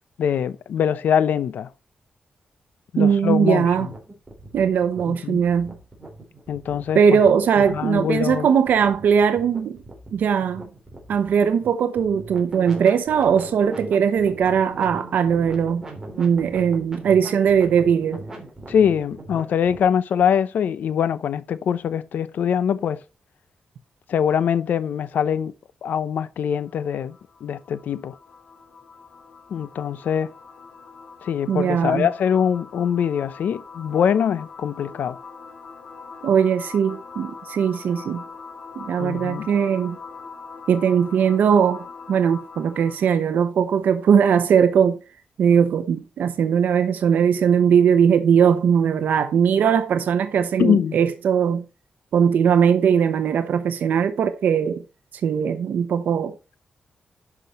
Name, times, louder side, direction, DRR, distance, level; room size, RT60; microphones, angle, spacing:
voice 1, 0.2-1.7 2.9-3.9 5.1-5.4 6.5-7.2 7.7-8.5 18.7-23.0 24.1-25.5 25.8-27.2 27.4-28.2 29.5-30.3 31.2-35.2 39.0-39.5 50.6-51.0, left 8 dB, 85° left, 0.7 m, -23 dB
voice 2, 3.0-3.9 4.5-5.7 6.9-9.8 10.1-10.7 11.1-15.8 16.2-18.2 31.5-32.1 36.2-38.2 38.8-40.0 40.7-45.0 45.4-51.6 52.1-54.8 55.2-56.3, right 7 dB, 85° right, 0.9 m, -19 dB
sound 1, 3.7-19.8, right 1 dB, 15° right, 3.4 m, -40 dB
sound 2, 26.5-43.2, left 4 dB, 70° left, 2.6 m, -42 dB
11.0 x 5.8 x 4.3 m
wide cardioid pair, 180°, 3 cm